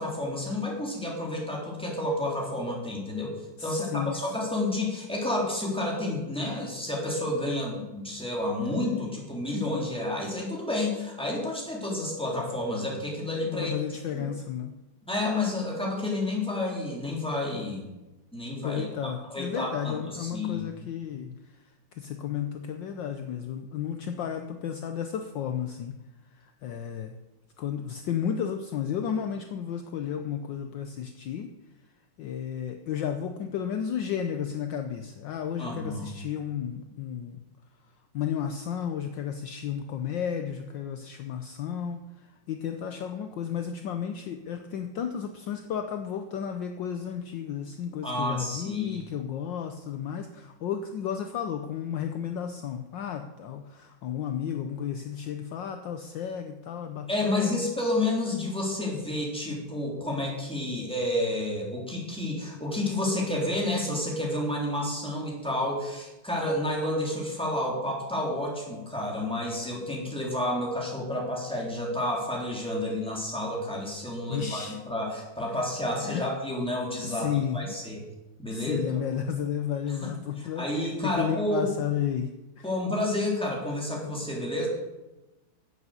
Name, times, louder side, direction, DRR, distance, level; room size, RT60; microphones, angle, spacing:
voice 1, 0.0-3.3 3.6-13.7 14.1-14.3 15.1-17.8 18.3-20.7 35.6-36.1 48.0-49.0 57.1-77.3 77.5-78.0 78.4-79.0 80.0-80.1 80.6-81.7 82.6-84.7, left 1 dB, ahead, -2 dB, 3.5 m, -30 dB
voice 2, 3.6-4.4 13.4-14.7 18.5-21.4 21.9-26.0 26.3-27.1 27.6-31.5 32.2-37.4 38.1-57.7 74.3-74.8 75.9-76.3 77.0-77.8 78.5-82.3 82.6-82.7, left 8 dB, 65° left, 7 dB, 1.4 m, -33 dB
11.0 x 8.5 x 7.9 m, 1.0 s
omnidirectional pair, 2.3 m